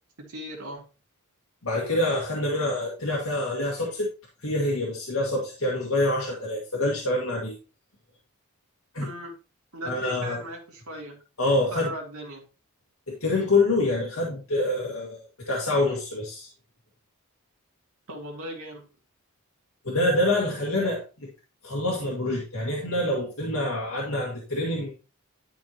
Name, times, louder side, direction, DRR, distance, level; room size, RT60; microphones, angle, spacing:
voice 1, 0.3-0.8 9.0-9.3 9.7-11.2 11.7-12.4 18.1-18.8, right 1 dB, 80° right, -1 dB, 2.9 m, -37 dB
voice 2, 1.6-4.1 4.4-7.6 8.9-9.1 9.8-10.4 11.4-11.9 13.1-16.5 19.8-21.3 21.6-24.9, left 2 dB, 70° left, -3 dB, 2.1 m, -26 dB
11.0 x 5.7 x 3.0 m, 0.32 s
head